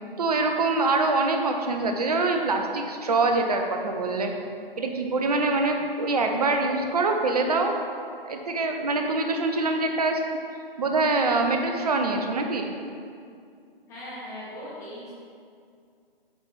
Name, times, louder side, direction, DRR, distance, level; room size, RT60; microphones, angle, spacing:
voice 1, 0.2-4.3 4.8-7.8 8.2-10.2 10.8-12.7, right 3 dB, 40° right, 4 dB, 0.8 m, -24 dB
voice 2, 13.9-15.1, left 1 dB, 10° left, -7 dB, 1.3 m, -39 dB
8.3 x 4.8 x 4.1 m, 2.3 s
figure-of-eight pair, 140°, 30 cm